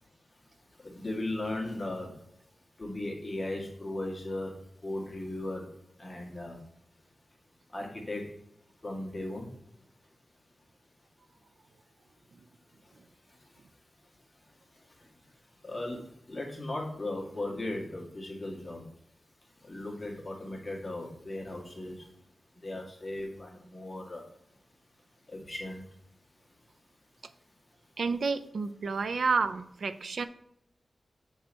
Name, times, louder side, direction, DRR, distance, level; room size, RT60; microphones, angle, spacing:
voice 1, 0.8-2.1 2.8-4.5 4.8-5.7 6.0-6.6 7.7-8.2 8.8-9.5 15.6-16.0 16.3-18.8 19.7-22.0 22.6-24.2 25.3-25.8, left 1 dB, 25° left, -1 dB, 1.7 m, -36 dB
voice 2, 28.0-30.3, right 4 dB, 75° right, 10 dB, 0.5 m, -30 dB
7.2 x 4.5 x 4.3 m, 0.76 s
wide cardioid pair, 120°, 0 cm